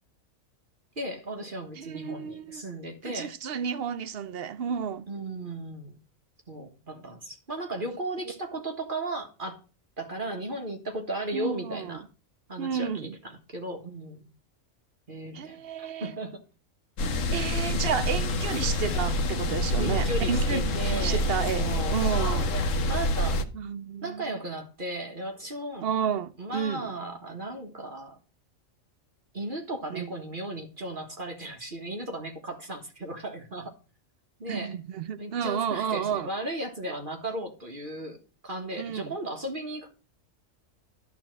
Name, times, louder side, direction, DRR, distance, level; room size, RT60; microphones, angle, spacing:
voice 1, 1.0-3.3 5.1-6.0 6.5-9.6 10.0-12.1 12.5-14.3 15.1-16.4 18.6-18.7 19.8-21.3 21.5-22.0 22.9-23.4 24.0-25.9 26.4-28.2 29.3-33.7 34.4-34.8 35.2-38.2 38.4-39.9, right 1 dB, 40° right, 1.5 m, -36 dB
voice 2, 1.8-2.6 3.0-5.1 11.3-12.0 12.6-13.1 15.3-16.1 17.3-22.6 23.5-24.4 25.8-26.9 29.9-30.1 34.5-36.3 38.8-39.2, right 7 dB, 55° right, 0.7 m, -31 dB
sound 1, 17.0-23.4, left 1 dB, 70° left, 1.3 m, -27 dB
11.5 x 4.1 x 7.7 m
omnidirectional pair, 1.4 m